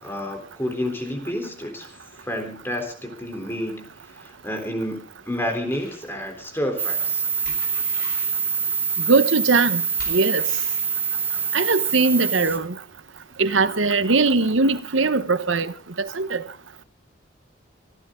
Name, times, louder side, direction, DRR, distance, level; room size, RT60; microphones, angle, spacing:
voice 1, 0.0-5.0 5.3-7.2, left 1 dB, 10° left, 3.7 m, -30 dB
sound 1, 5.7-6.1 7.4-8.4 10.0-10.9, left 3 dB, 50° left, 6.7 m, -43 dB
sound 2, 6.8-12.6, right 6 dB, 10° right, 1.3 m, -25 dB
voice 2, 9.1-9.8 10.1-10.4 11.5-12.7 13.4-15.7 16.0-16.4, right 3 dB, 90° right, 1.1 m, -20 dB
26.0 x 12.5 x 3.8 m
head